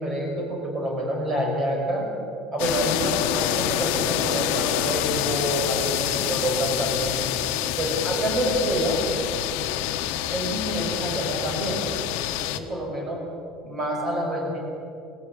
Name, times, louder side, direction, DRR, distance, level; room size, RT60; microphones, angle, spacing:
voice 1, 0.0-2.1 2.5-7.2 7.8-9.0 10.3-11.9 12.5-13.2 13.6-14.6, right 1 dB, 20° right, 0 dB, 5.1 m, -27 dB
sound 1, 2.6-12.6, left 12 dB, 80° left, 1.2 m, -27 dB
19.5 x 16.0 x 8.4 m, 2.7 s
cardioid pair, 175°, 0 cm